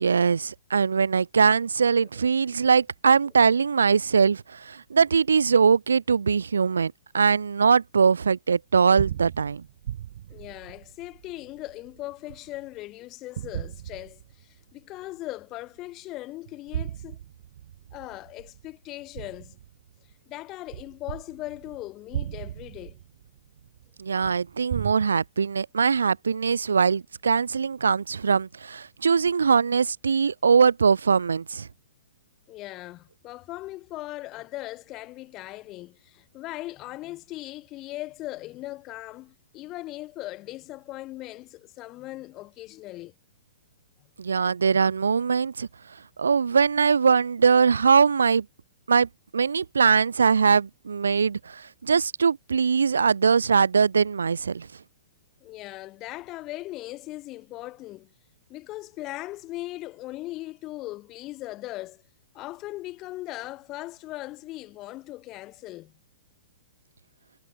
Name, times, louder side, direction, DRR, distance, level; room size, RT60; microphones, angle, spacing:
voice 1, 0.0-9.7 24.0-31.7 44.2-45.7 46.2-48.5 48.9-54.7, right 5 dB, 85° right, 1.8 m, -22 dB
sound 1, 8.7-12.8 13.4-14.7 15.2-15.3 16.5-20.1 20.7-24.9, right 11 dB, 65° right, 7.7 m, -37 dB
voice 2, 10.3-17.2 17.9-19.6 20.3-23.0 32.5-43.1 55.4-58.1 58.5-62.0 62.3-66.0, left 17 dB, 30° left, 2.8 m, -39 dB
hypercardioid pair, 125°, 0 cm